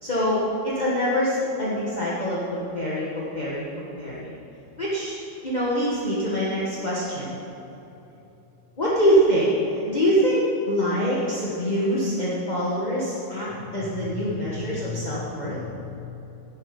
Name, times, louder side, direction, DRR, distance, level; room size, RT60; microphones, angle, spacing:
voice 1, 0.0-4.4 4.8-5.2 5.4-7.4 8.8-13.5 13.7-15.6, equal, 25° left, -7 dB, 1.8 m, -24 dB
voice 2, 13.7-15.9, left 4 dB, 75° left, 0 dB, 2.4 m, -36 dB
14.0 x 10.5 x 5.3 m, 3.0 s
omnidirectional pair, 2.0 m